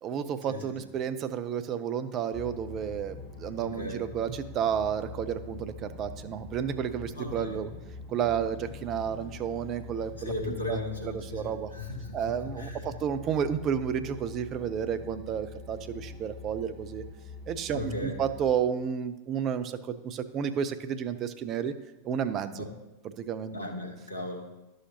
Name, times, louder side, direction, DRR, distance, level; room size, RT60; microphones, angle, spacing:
voice 1, 0.0-7.7 8.1-11.7 12.1-17.0 17.5-21.7 22.0-22.6 23.0-23.6, right 8 dB, 35° right, 11 dB, 0.5 m, -31 dB
sound 1, 2.3-18.5, left 3 dB, 10° right, 2.2 m, -44 dB
voice 2, 3.6-4.0 7.2-7.6 10.2-12.9 17.7-18.2 22.6-22.7 23.5-24.5, left 2 dB, 80° left, 1 dB, 1.3 m, -36 dB
11.0 x 6.4 x 2.8 m, 1.0 s
figure-of-eight pair, 90°, 0 cm